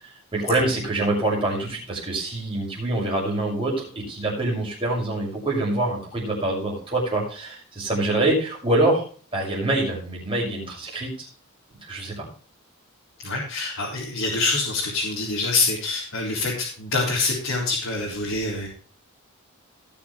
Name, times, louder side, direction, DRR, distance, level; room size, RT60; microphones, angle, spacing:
voice 1, 0.0-9.0 9.3-11.3 11.8-12.3, right 2 dB, 25° right, -3 dB, 6.4 m, -25 dB
voice 2, 13.2-18.7, left 3 dB, 70° left, -4 dB, 3.9 m, -25 dB
19.0 x 7.2 x 3.3 m, 0.40 s
head